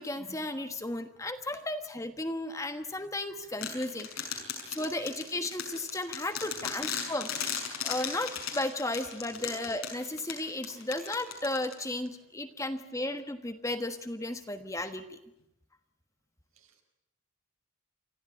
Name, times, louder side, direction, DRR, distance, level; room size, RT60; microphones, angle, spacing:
voice 1, 0.0-4.4 4.7-7.5 7.8-15.2, left 1 dB, 15° left, 8 dB, 1.3 m, -34 dB
sound 1, 3.6-12.1, left 7 dB, 90° left, 6.4 m, -37 dB
voice 2, 4.3-5.1 6.0-6.8 9.2-9.5 11.1-11.3 16.5-16.8, right 1 dB, 80° right, 4 dB, 4.6 m, -57 dB
28.5 x 13.5 x 9.9 m, 0.84 s
head